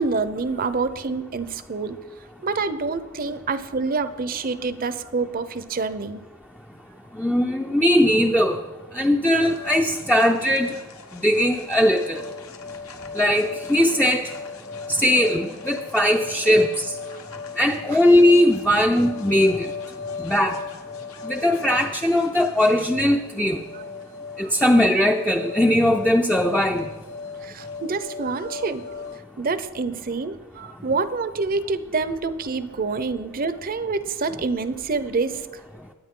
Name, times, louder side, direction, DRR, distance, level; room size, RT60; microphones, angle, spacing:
voice 1, 0.0-2.0 2.4-6.2 17.9-18.0 23.7-23.9 24.4-24.7 27.4-29.0 29.4-35.5, right 4 dB, 40° right, 13 dB, 0.7 m, -27 dB
voice 2, 7.2-8.6 9.0-10.7 11.1-12.2 13.2-14.2 15.0-16.8 17.6-19.7 20.2-20.6 21.2-23.6 24.4-26.9, left 1 dB, 5° left, 2 dB, 0.5 m, -19 dB
sound 1, 9.4-29.2, left 5 dB, 80° left, 1.2 m, -38 dB
21.5 x 9.3 x 3.8 m, 1.3 s
head